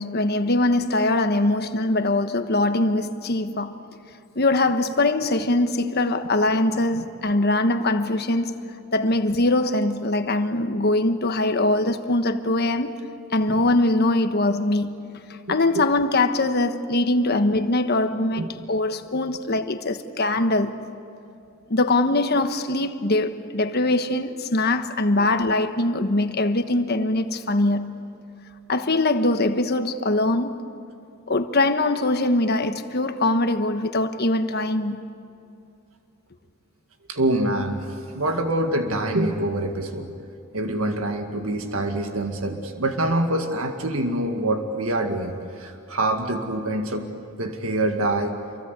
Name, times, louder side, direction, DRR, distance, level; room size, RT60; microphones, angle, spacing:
voice 1, 0.0-3.8 4.3-8.6 8.9-12.9 13.3-15.0 15.5-20.8 21.7-28.0 28.7-30.6 31.3-35.1, left 2 dB, 50° left, 1.3 m, -22 dB
voice 2, 15.5-15.9 18.4-18.5 25.2-25.3 37.1-40.1 40.5-47.1 47.4-48.4, right 1 dB, 75° right, 2.0 m, -25 dB
28.0 x 23.5 x 8.3 m
head